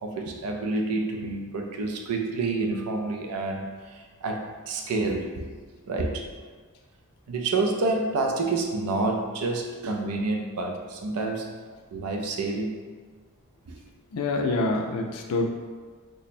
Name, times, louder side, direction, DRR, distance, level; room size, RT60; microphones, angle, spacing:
voice 1, 0.0-5.5 5.9-6.3 7.3-11.5 11.9-12.8, right 3 dB, 80° right, 3 dB, 0.5 m, -28 dB
voice 2, 14.1-15.5, left 2 dB, 70° left, 2 dB, 0.4 m, -26 dB
3.3 x 2.1 x 4.1 m, 1.5 s
head